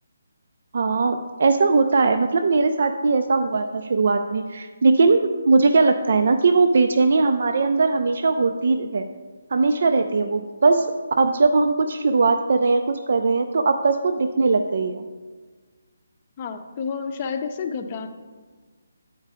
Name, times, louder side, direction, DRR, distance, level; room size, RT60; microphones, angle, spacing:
voice 1, 0.7-9.1 9.5-15.0, right 3 dB, 60° right, 7 dB, 0.3 m, -20 dB
voice 2, 16.4-18.1, left 6 dB, 30° left, 7 dB, 0.6 m, -30 dB
8.8 x 4.6 x 3.5 m, 1.4 s
figure-of-eight pair, 155°, 0 cm